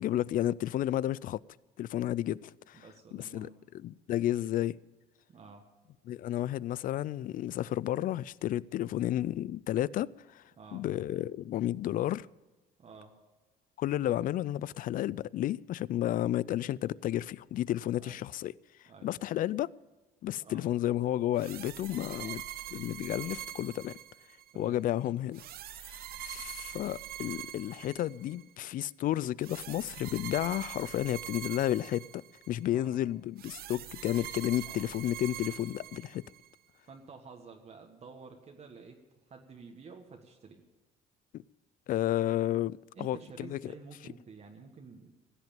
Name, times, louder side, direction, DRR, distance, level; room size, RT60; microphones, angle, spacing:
voice 1, 0.0-1.4 1.8-2.8 3.1-3.5 3.8-4.8 6.1-10.4 10.7-12.3 13.8-18.5 19.0-19.7 20.2-22.4 22.7-24.0 24.6-25.4 25.8-36.2 41.3-41.4 41.9-43.2 43.5-43.7, left 13 dB, 55° left, 0.4 m, -32 dB
voice 2, 2.7-3.6 5.3-5.6 10.6-10.8 12.8-13.1 18.0-18.2 18.9-19.1 20.4-20.6 22.2-22.4 24.5-24.8 32.7-33.0 34.6-34.9 36.9-39.0 39.3-40.6 42.9-45.1, right 4 dB, 40° right, 1.5 m, -50 dB
sound 1, 21.4-24.5 25.3-28.4 29.4-32.6 33.4-36.5, right 12 dB, 65° right, 0.8 m, -44 dB
16.0 x 8.0 x 9.2 m
cardioid pair, 110°, 17 cm